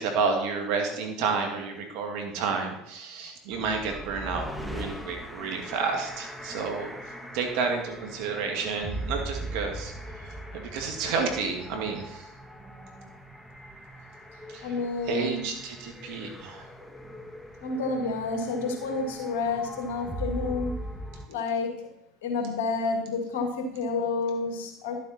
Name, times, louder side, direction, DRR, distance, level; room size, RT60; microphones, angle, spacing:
voice 1, 0.0-6.9 7.3-9.9 10.5-12.3 14.5-14.7 15.1-16.6, right 5 dB, 70° right, 3 dB, 2.1 m, -30 dB
sound 1, 3.5-21.3, equal, 5° left, 1.3 m, -40 dB
voice 2, 14.6-15.4 17.6-20.7 21.3-21.7 22.2-25.0, left 3 dB, 80° left, 3 dB, 2.1 m, -29 dB
11.5 x 7.4 x 4.3 m, 0.80 s
hypercardioid pair, 80°, 0 cm